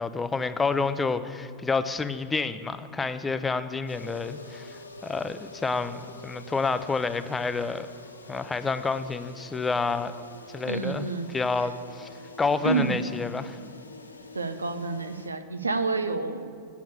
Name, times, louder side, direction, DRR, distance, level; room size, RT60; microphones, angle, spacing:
voice 1, 0.0-7.9 8.3-10.1 10.5-13.6, left 4 dB, 15° left, 12 dB, 0.5 m, -29 dB
sound 1, 3.9-15.3, left 2 dB, 80° left, 0.7 m, -46 dB
voice 2, 10.6-11.3 12.6-13.0 14.3-16.5, right 4 dB, 80° right, 10 dB, 0.6 m, -28 dB
9.0 x 7.1 x 8.3 m, 2.4 s
figure-of-eight pair, 90°, 0 cm